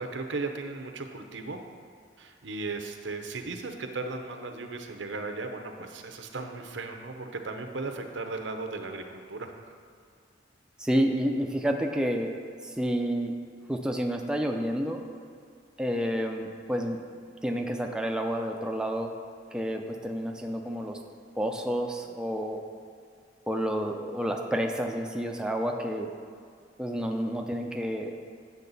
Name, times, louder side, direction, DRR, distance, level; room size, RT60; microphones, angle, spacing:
voice 1, 0.0-1.6 2.2-9.5, right 3 dB, 85° right, 5 dB, 0.8 m, -36 dB
voice 2, 10.8-12.3 12.6-13.3 13.7-15.0 15.8-17.1 17.4-19.1 19.5-21.0 21.4-22.6 23.5-26.1 26.8-28.2, equal, 5° right, 2 dB, 0.5 m, -29 dB
8.3 x 6.5 x 4.0 m, 2.2 s
head